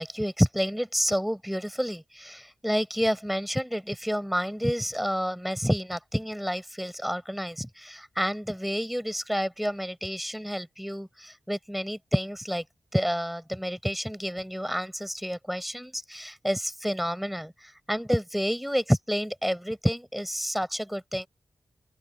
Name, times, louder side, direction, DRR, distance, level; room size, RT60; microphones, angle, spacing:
voice 1, 0.0-12.6 12.9-21.3, equal, ahead, 4.9 m, -29 dB
open air
cardioid pair, 45°, 7 cm